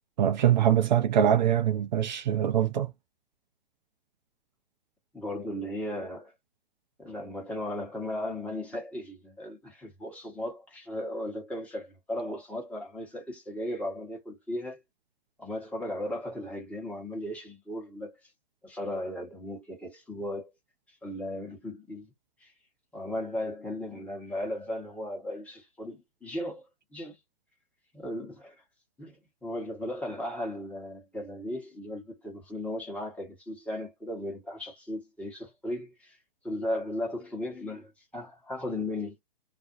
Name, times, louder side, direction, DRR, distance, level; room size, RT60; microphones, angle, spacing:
voice 1, 0.2-2.9, right 10 dB, 50° right, 0.4 m, -23 dB
voice 2, 5.1-6.3 7.0-14.8 15.4-18.3 18.6-20.5 20.9-22.1 22.4-22.5 22.9-26.6 26.9-27.2 27.9-28.6 29.0-36.2 36.4-39.2, left 1 dB, 5° left, 0.9 m, -36 dB
2.5 x 2.1 x 2.4 m
figure-of-eight pair, 120°, 29 cm